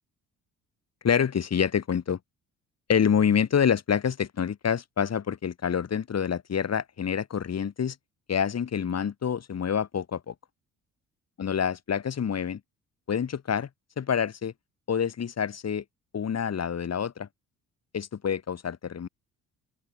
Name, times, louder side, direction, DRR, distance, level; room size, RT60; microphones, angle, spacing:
voice 1, 1.0-2.2 2.9-8.0 8.3-10.3 11.4-12.6 13.1-13.7 14.0-14.5 14.9-15.8 16.1-17.3 17.9-19.1, left 7 dB, 50° left, 3.6 m, -27 dB
open air
cardioid pair, 75°, 34 cm